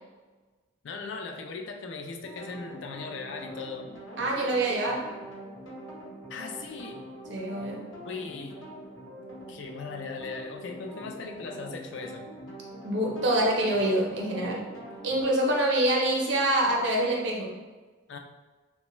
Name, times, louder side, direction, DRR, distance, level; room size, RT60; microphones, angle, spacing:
voice 1, 0.8-3.9 6.3-7.1 8.1-8.6 9.5-12.3 18.1-18.2, left 4 dB, 65° left, 3 dB, 0.4 m, -38 dB
sound 1, 2.2-15.2, right 1 dB, 80° left, 0.9 m, -43 dB
voice 2, 4.2-5.1 7.3-7.8 12.8-14.7 15.0-17.5, right 1 dB, 60° right, -1 dB, 0.6 m, -26 dB
3.1 x 2.1 x 3.0 m, 1.3 s
head